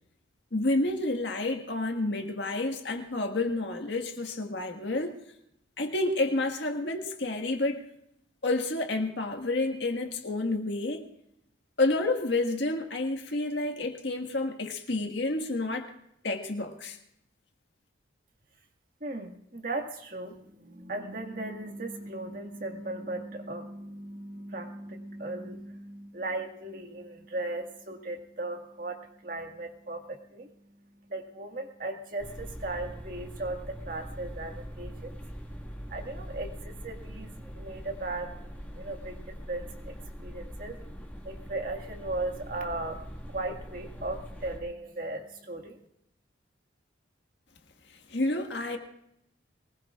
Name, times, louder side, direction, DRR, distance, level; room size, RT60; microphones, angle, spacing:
voice 1, 0.5-5.1 5.8-7.8 8.4-11.0 11.8-15.9 16.2-17.0 48.1-48.8, left 2 dB, 65° left, 3 dB, 1.7 m, -29 dB
voice 2, 19.0-45.9, right 2 dB, 45° right, 3 dB, 1.8 m, -37 dB
sound 1, 32.2-44.6, equal, 10° left, 1.8 m, -42 dB
23.0 x 20.0 x 2.4 m, 0.76 s
head